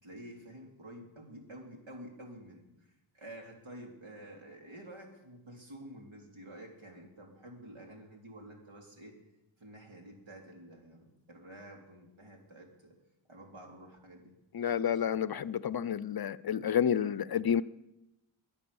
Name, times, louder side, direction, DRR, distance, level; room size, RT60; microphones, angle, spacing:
voice 1, 0.0-9.1 9.6-12.9 13.3-14.3, right 1 dB, 65° right, 3.9 m, -50 dB
voice 2, 14.5-17.6, left 8 dB, 50° left, 0.6 m, -30 dB
22.5 x 8.6 x 7.1 m
wide cardioid pair, 100°, 49 cm